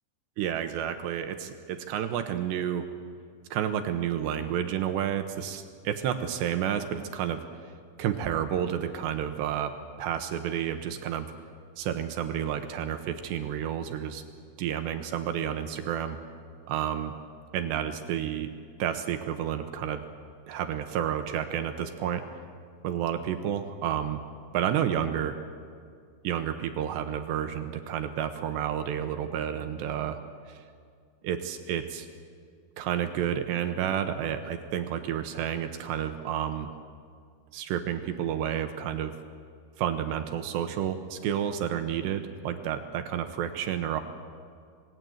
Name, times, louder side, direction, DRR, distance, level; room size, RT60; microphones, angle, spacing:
voice 1, 0.4-2.9 3.5-7.7 8.0-11.3 11.8-14.2 14.6-16.2 16.7-17.1 17.5-18.5 18.8-20.0 20.5-22.2 22.8-24.2 24.5-25.4 26.2-30.2 30.5-30.6 31.2-32.1 32.8-36.7 37.5-39.1 39.8-44.0, right 9 dB, 75° right, 8 dB, 2.9 m, -30 dB
27.0 x 20.0 x 8.0 m, 2.2 s
omnidirectional pair, 5.7 m